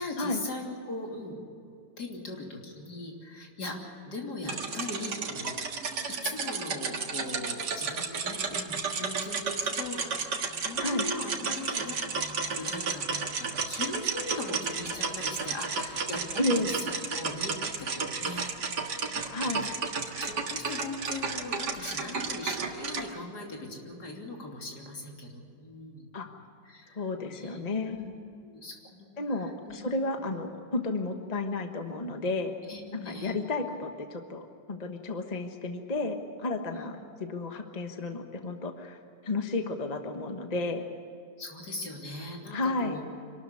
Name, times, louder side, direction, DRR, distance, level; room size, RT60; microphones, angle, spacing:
voice 1, 0.0-1.4 2.0-5.7 6.1-12.0 12.5-19.3 19.6-19.8 20.2-26.1 26.6-27.6 27.9-28.2 28.4-29.8 30.2-30.3 32.7-33.4 36.7-36.9 41.4-43.0, left 2 dB, 65° left, 0 dB, 3.6 m, -40 dB
sound 1, 4.5-23.1, right 5 dB, 70° right, 2.3 m, -32 dB
voice 2, 16.4-16.7 19.3-19.7 26.1-26.3 26.9-28.0 29.2-32.5 32.9-40.9 42.5-43.0, left 2 dB, 25° left, 5 dB, 1.2 m, -32 dB
26.5 x 13.0 x 9.8 m, 2.6 s
omnidirectional pair, 1.9 m